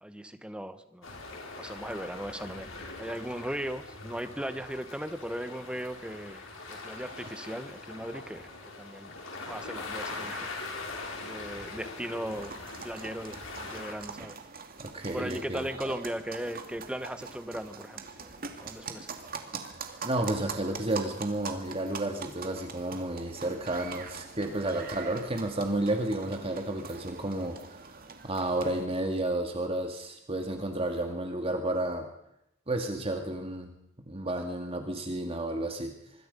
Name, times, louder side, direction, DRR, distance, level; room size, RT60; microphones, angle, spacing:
voice 1, 0.0-2.7 3.0-8.4 8.8-10.5 11.2-12.5 12.8-14.4 15.1-19.1, equal, 5° right, 10 dB, 1.4 m, -38 dB
sound 1, 1.0-13.9, left 3 dB, 90° left, 5.5 m, -42 dB
sound 2, 12.3-28.9, right 5 dB, 50° right, 2.5 m, -43 dB
voice 2, 14.8-15.7 20.0-27.8 28.2-32.1 32.7-33.7 34.0-35.9, right 1 dB, 30° right, 4 dB, 2.2 m, -31 dB
25.5 x 21.5 x 5.5 m, 0.80 s
head